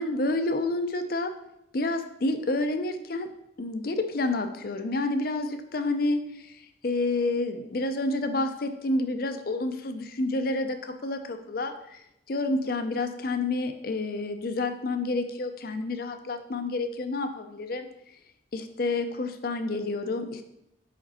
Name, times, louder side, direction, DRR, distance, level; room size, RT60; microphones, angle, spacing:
voice 1, 0.0-1.3 1.7-3.3 3.6-12.0 12.3-17.9 18.5-20.4, left 2 dB, 50° left, 7 dB, 0.5 m, -29 dB
5.2 x 5.0 x 4.1 m, 0.82 s
head